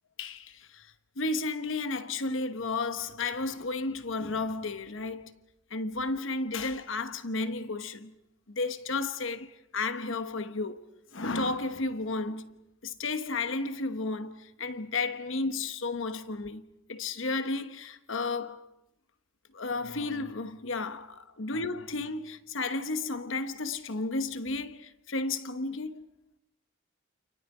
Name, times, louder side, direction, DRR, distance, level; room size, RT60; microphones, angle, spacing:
voice 1, 0.2-0.9 1.2-5.3 5.7-8.1 8.5-9.5 9.7-10.8 11.1-12.5 12.8-16.6 16.9-18.7 19.5-26.1, left 3 dB, 75° left, 1.1 m, -33 dB
29.5 x 28.5 x 4.9 m
head